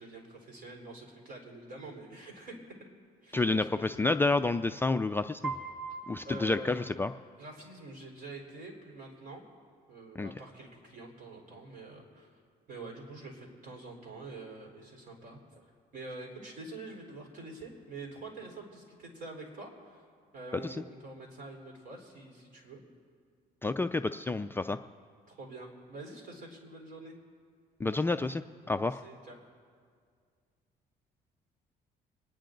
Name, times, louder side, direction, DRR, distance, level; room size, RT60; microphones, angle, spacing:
voice 1, 0.0-2.5 3.2-3.7 6.2-6.8 7.4-9.4 9.9-12.4 12.7-15.6 15.9-20.0 20.3-22.8 25.3-27.1 28.8-29.4, right 2 dB, 55° right, 1 dB, 4.0 m, -46 dB
voice 2, 3.3-5.5 6.1-7.1 10.2-10.3 20.6-20.8 23.6-24.8 27.8-28.4 28.7-29.0, left 3 dB, 15° left, 8 dB, 0.3 m, -29 dB
Piano, 5.4-7.5, right 4 dB, 5° right, 3.0 m, -41 dB
27.5 x 10.0 x 3.9 m, 2.1 s
cardioid pair, 110°, 17 cm